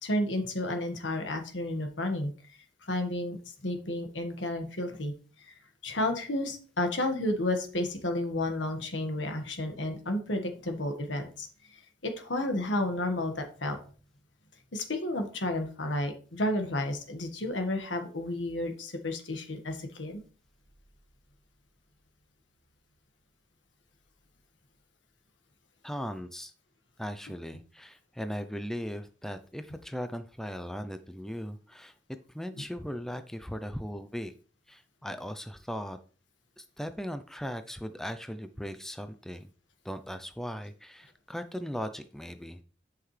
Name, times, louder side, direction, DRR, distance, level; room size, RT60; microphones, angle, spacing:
voice 1, 0.0-2.3 2.8-3.4 3.6-5.1 5.5-5.6 5.8-11.5 11.7-13.8 14.7-20.2, left 1 dB, 85° left, 5 dB, 1.7 m, -31 dB
voice 2, 25.8-26.5 27.0-32.0 32.3-34.3 34.7-36.0 36.6-39.5 39.8-42.6, equal, ahead, 9 dB, 0.4 m, -38 dB
10.5 x 5.8 x 3.3 m, 0.40 s
head